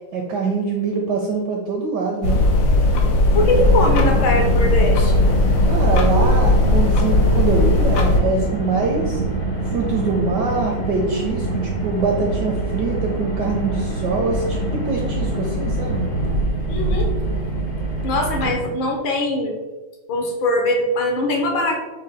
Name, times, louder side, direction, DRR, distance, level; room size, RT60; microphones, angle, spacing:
voice 1, 0.1-2.4 5.6-9.2 9.6-16.1, right 4 dB, 80° right, 1 dB, 0.9 m, -24 dB
sound 1, 2.2-8.2, left 2 dB, 90° left, 1.7 m, -17 dB
voice 2, 3.3-5.2 16.7-17.1 18.0-19.5 20.1-21.8, left 1 dB, 70° left, 2 dB, 1.4 m, -21 dB
Car, 3.3-18.5, right 2 dB, 55° left, 0.5 m, -25 dB
6.2 x 2.1 x 3.9 m, 1.2 s
omnidirectional pair, 2.4 m